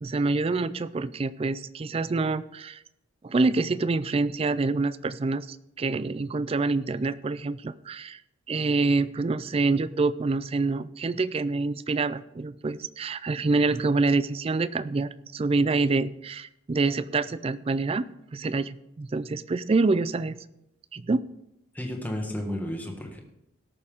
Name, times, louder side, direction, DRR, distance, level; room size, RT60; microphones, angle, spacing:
voice 1, 0.0-2.8 3.2-8.2 8.5-18.1 18.3-20.4 20.9-21.2, right 3 dB, 30° right, 16 dB, 0.3 m, -26 dB
voice 2, 21.7-23.2, left 1 dB, 10° left, 1 dB, 1.6 m, -32 dB
18.0 x 6.8 x 3.6 m, 0.85 s
head